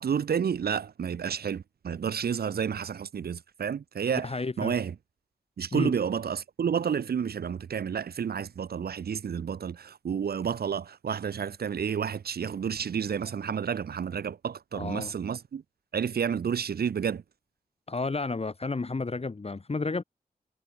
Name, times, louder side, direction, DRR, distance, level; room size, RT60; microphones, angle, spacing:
voice 1, 0.0-4.3 4.6-4.9 5.6-15.6 15.9-17.2, right 7 dB, 80° right, 0.9 m, -30 dB
voice 2, 4.2-4.7 5.7-5.9 14.7-15.1 17.9-20.0, left 3 dB, 40° left, 1.6 m, -31 dB
cardioid pair, 55°, 16 cm